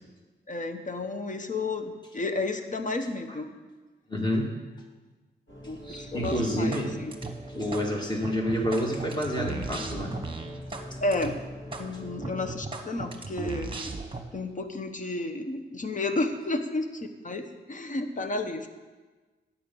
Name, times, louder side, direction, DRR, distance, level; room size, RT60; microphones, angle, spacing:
voice 1, 0.5-3.5 5.6-7.1 11.0-11.4 11.8-13.8 14.3-18.7, left 2 dB, 45° left, 7 dB, 0.9 m, -32 dB
voice 2, 4.1-4.5 5.8-6.9 7.5-10.2, equal, 25° left, 0 dB, 1.9 m, -28 dB
sound 1, 5.5-12.5, equal, 80° left, 2.1 m, -43 dB
sound 2, 6.2-6.9 7.1-7.9 8.2-10.9 11.1-11.3 11.7-11.9 12.2-14.2, right 3 dB, 30° right, 1.1 m, -36 dB
9.4 x 7.1 x 5.4 m, 1.3 s
cardioid pair, 80°, 18 cm